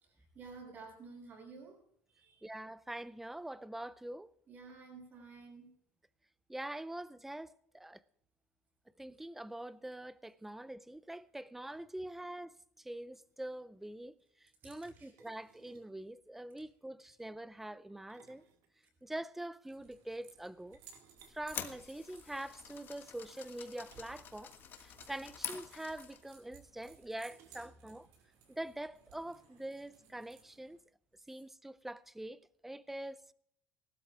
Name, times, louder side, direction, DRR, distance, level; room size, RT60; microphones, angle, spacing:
voice 1, 0.3-1.8 2.1-2.5 4.5-5.7 14.6-15.1, right 4 dB, 35° right, 5.8 m, -52 dB
voice 2, 2.4-4.3 6.5-8.0 9.0-14.1 14.4-18.4 19.0-20.8 21.3-24.5 24.8-28.1 28.5-30.8 31.3-33.3, right 1 dB, 5° right, 0.4 m, -44 dB
sound 1, 12.9-13.0 13.1-13.4 15.2-16.0 17.9-19.3 20.7-22.4 23.9-24.4 24.6-24.7 25.1-25.2 26.2-26.3 27.2-28.1, right 8 dB, 65° right, 2.0 m, -65 dB
sound 2, 19.6-30.8, right 6 dB, 85° right, 5.4 m, -61 dB
sound 3, 21.2-26.3, left 8 dB, 35° left, 1.4 m, -47 dB
18.5 x 12.5 x 3.4 m
cardioid pair, 165°, 6 cm